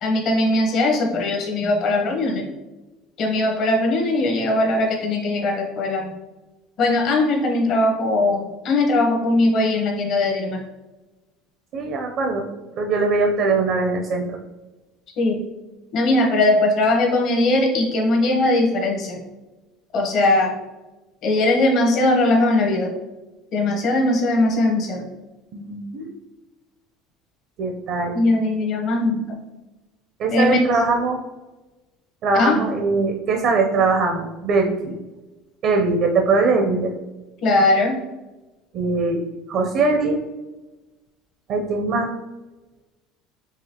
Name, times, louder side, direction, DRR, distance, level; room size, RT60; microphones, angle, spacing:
voice 1, 0.0-2.4 3.2-6.1 6.8-10.6 15.2-15.4 15.9-19.2 19.9-20.5 21.2-22.9 23.5-25.1 28.1-29.2 30.3-30.6 32.4-32.6 37.4-38.0, left 2 dB, 55° left, 1 dB, 1.1 m, -20 dB
voice 2, 11.7-12.4 12.8-14.4 25.5-26.1 27.6-28.2 30.2-31.2 32.2-35.0 35.6-36.9 38.7-40.2 41.5-42.1, right 3 dB, 55° right, 3 dB, 0.6 m, -21 dB
4.9 x 2.8 x 2.9 m, 1.1 s
supercardioid pair, 95°, 0 cm